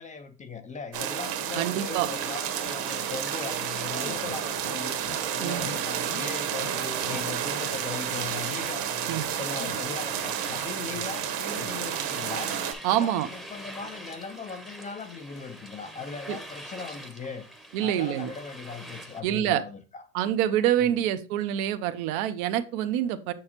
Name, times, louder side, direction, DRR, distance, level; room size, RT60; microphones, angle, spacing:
voice 1, 0.0-17.5 17.8-20.0 20.8-21.0, left 5 dB, 20° left, 7 dB, 0.4 m, -39 dB
sound 1, 0.9-12.7, right 9 dB, 55° right, 1.3 m, -31 dB
voice 2, 1.6-2.1 5.4-5.6 9.1-9.3 12.8-13.3 16.3-16.4 17.7-18.3 19.2-19.6 20.1-23.3, right 11 dB, 70° right, 11 dB, 0.8 m, -26 dB
sound 2, 2.1-19.2, equal, ahead, 0.7 m, -45 dB
sound 3, 4.1-4.8 5.1-5.2 5.6-5.8 6.1-6.3 6.6-7.3 7.6-7.8 8.1-8.3 8.6-9.3 9.6-11.3 11.6-11.8, left 7 dB, 55° left, 0.8 m, -42 dB
6.6 x 6.3 x 2.9 m, 0.36 s
supercardioid pair, 120°, 45 cm